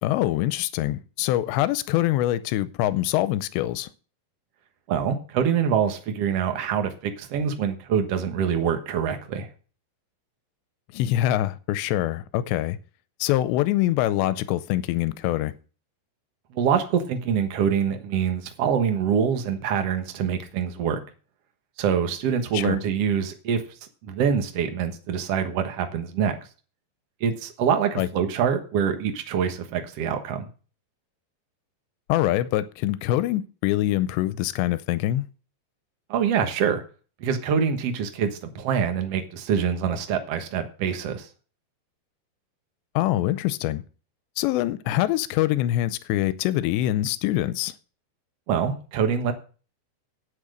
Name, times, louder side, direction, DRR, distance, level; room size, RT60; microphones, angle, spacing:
voice 1, 0.0-3.9 10.9-12.8 13.2-15.5 22.5-22.8 28.0-28.1 32.1-35.2 43.0-43.8 44.4-47.7, left 14 dB, 85° left, 2.9 m, -24 dB
voice 2, 4.9-9.5 16.5-21.0 21.8-23.6 24.0-26.4 27.2-30.5 36.1-36.8 37.2-41.3 48.5-49.3, right 7 dB, 85° right, 1.3 m, -25 dB
8.9 x 8.6 x 6.5 m
omnidirectional pair, 4.9 m